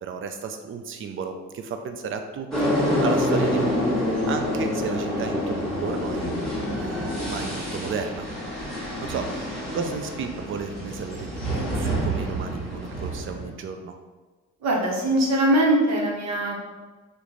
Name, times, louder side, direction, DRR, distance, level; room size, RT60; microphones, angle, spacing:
voice 1, 0.0-3.8 4.2-6.3 6.8-8.3 8.8-9.5 9.7-14.0, right 5 dB, 45° right, 6 dB, 0.4 m, -33 dB
sound 1, 2.5-13.5, equal, ahead, 1.2 m, -27 dB
voice 2, 14.6-16.6, right 1 dB, 60° right, -2 dB, 0.9 m, -21 dB
3.0 x 2.2 x 3.8 m, 1.3 s
cardioid pair, 90°, 30 cm